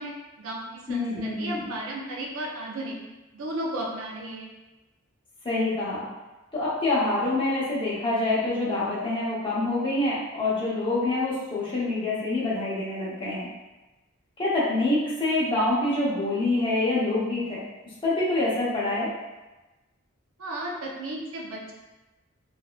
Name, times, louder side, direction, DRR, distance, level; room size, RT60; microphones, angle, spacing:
voice 1, 0.0-3.0 3.3-4.5 20.4-21.7, right 1 dB, 70° right, -1 dB, 0.5 m, -34 dB
voice 2, 0.9-1.7 5.4-6.0 6.5-13.5 14.4-17.6 18.0-19.1, left 2 dB, 25° left, -7 dB, 0.8 m, -26 dB
3.4 x 2.5 x 2.3 m, 1.1 s
head